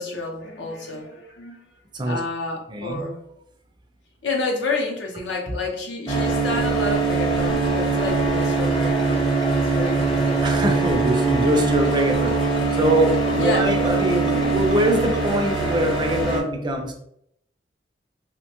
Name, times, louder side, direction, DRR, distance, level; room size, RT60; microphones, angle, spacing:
voice 1, 0.0-1.7 2.0-3.2 4.2-10.4 13.4-13.8, left 3 dB, 75° left, 1 dB, 0.6 m, -29 dB
voice 2, 2.7-3.0 10.4-17.0, right 1 dB, 25° right, 3 dB, 0.4 m, -23 dB
sound 1, 6.1-16.4, right 3 dB, 25° left, 0.7 m, -22 dB
Ringtone, 8.4-15.2, right 2 dB, 70° right, 0.6 m, -40 dB
3.0 x 2.1 x 2.9 m, 0.73 s
head